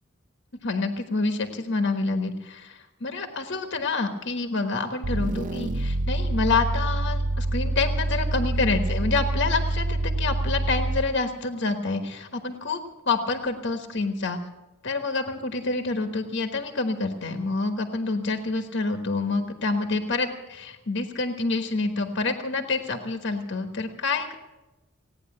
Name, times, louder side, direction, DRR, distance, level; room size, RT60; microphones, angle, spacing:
voice 1, 0.6-12.8 13.1-14.4 14.8-24.3, left 3 dB, 60° left, 6 dB, 1.3 m, -27 dB
sound 1, 5.0-11.2, right 1 dB, 40° right, 0.5 m, -26 dB
17.5 x 9.7 x 8.5 m, 1.1 s
head